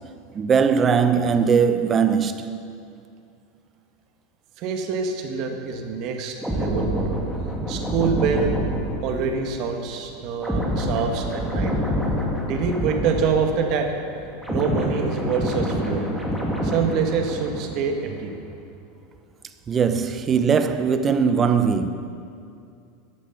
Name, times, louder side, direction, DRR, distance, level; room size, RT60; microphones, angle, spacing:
voice 1, 0.3-2.6 19.7-21.9, right 6 dB, 30° right, 0.9 m, -20 dB
voice 2, 4.6-7.2 7.7-8.5 9.0-11.7 12.4-13.9 14.5-16.1 16.6-18.3, right 6 dB, 55° right, 1.8 m, -25 dB
sound 1, 6.4-13.9 14.2-17.9 18.2-18.4, equal, ahead, 2.4 m, -27 dB
15.0 x 9.9 x 5.9 m
hypercardioid pair, 110°, 0 cm